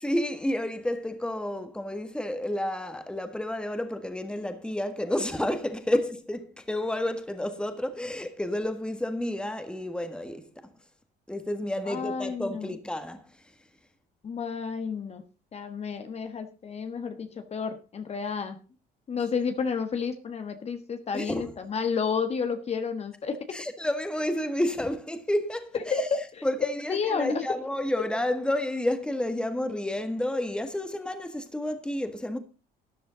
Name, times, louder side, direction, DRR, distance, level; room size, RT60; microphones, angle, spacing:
voice 1, 0.0-10.5 11.3-13.3 21.1-21.5 23.5-26.1 26.4-32.4, left 1 dB, 5° left, 1.6 m, -30 dB
voice 2, 11.9-12.8 14.2-15.2 15.5-18.6 19.1-23.6 25.9-26.4 26.9-27.4, left 5 dB, 40° left, 1.4 m, -31 dB
13.0 x 10.0 x 3.9 m
cardioid pair, 110°, 17 cm